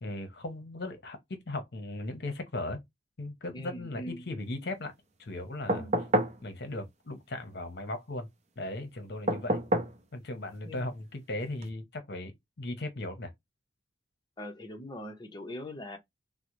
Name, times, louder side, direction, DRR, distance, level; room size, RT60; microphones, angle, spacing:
voice 1, 0.0-2.8 3.2-4.9 5.2-5.9 6.4-8.3 8.6-9.6 10.1-13.3, left 2 dB, 60° left, 0.8 m, -37 dB
voice 2, 3.5-4.3 5.7-6.0 10.6-10.9 14.4-16.0, left 1 dB, 25° left, 0.7 m, -42 dB
sound 1, 5.7-6.4 9.3-10.0 11.6-11.7, right 1 dB, 40° right, 0.6 m, -28 dB
3.7 x 2.1 x 3.0 m
head